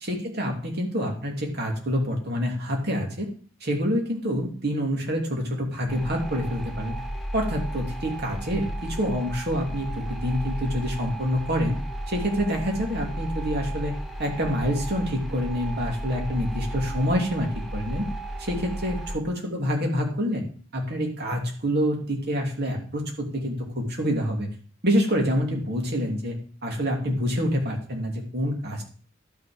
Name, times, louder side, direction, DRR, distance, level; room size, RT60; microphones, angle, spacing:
voice 1, 0.0-3.3 3.6-7.0 7.3-11.8 12.1-18.1 18.4-20.4 20.7-24.5 24.8-28.8, equal, 50° right, 1 dB, 2.7 m, -27 dB
sound 1, 5.9-19.2, right 1 dB, ahead, 1.2 m, -34 dB
11.5 x 6.4 x 5.1 m, 0.42 s
head